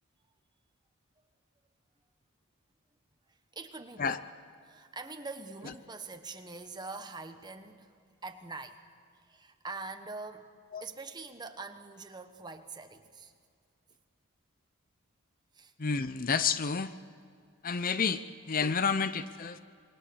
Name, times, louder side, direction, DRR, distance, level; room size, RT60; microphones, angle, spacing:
voice 1, 3.3-4.2 4.6-8.8 9.1-10.5 10.8-13.3 15.5-15.7, right 3 dB, 20° right, 7 dB, 1.3 m, -44 dB
voice 2, 15.8-16.9 17.6-19.6, left 5 dB, 40° left, 13 dB, 0.6 m, -30 dB
27.0 x 23.0 x 7.0 m, 2.2 s
head